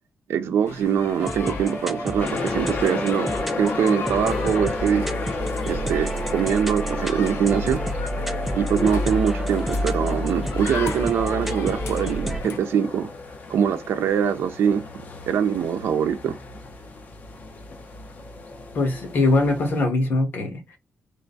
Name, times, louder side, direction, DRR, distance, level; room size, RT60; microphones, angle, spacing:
voice 1, 0.3-3.3 3.6-5.0 5.7-7.8 8.5-13.1 13.5-14.8 15.3-16.4, right 8 dB, 80° right, 0.6 m, -23 dB
sound 1, 0.6-12.6, left 5 dB, 75° left, 0.6 m, -36 dB
sound 2, 1.2-12.4, equal, ahead, 0.4 m, -29 dB
sound 3, 2.2-19.9, left 3 dB, 40° left, 0.8 m, -34 dB
voice 2, 18.7-20.8, left 2 dB, 55° left, 1.6 m, -22 dB
3.7 x 2.2 x 3.9 m
wide cardioid pair, 140°, 4 cm